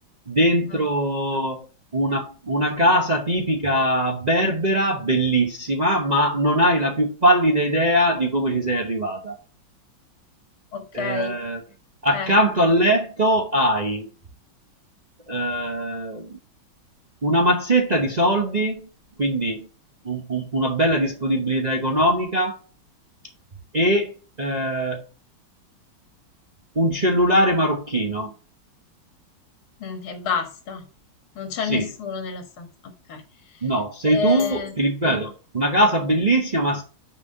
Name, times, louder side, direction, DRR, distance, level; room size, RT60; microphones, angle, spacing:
voice 1, 0.3-1.7 1.9-9.3 10.9-11.6 12.0-14.1 15.3-16.4 17.2-18.9 19.2-19.7 20.0-22.6 23.7-24.1 24.4-25.0 26.7-28.3 31.6-31.9 33.6-36.8, right 1 dB, 35° right, 0.7 m, -21 dB
voice 2, 10.7-11.3 12.1-12.3 29.8-30.9 31.4-33.2 33.5-33.6 34.1-34.7, left 5 dB, 80° left, 2.3 m, -29 dB
6.0 x 4.6 x 6.6 m
omnidirectional pair, 2.2 m